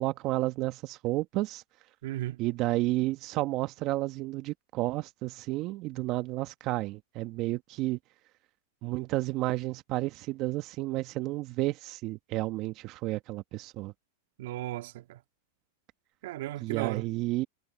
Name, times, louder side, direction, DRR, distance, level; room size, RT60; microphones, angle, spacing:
voice 1, 0.0-1.6 2.4-8.0 8.8-13.9 16.6-17.5, right 18 dB, 45° right, 1.4 m, -31 dB
voice 2, 2.0-2.4 14.4-15.2 16.2-17.1, right 15 dB, 65° right, 1.8 m, -35 dB
hypercardioid pair, 120°, 0 cm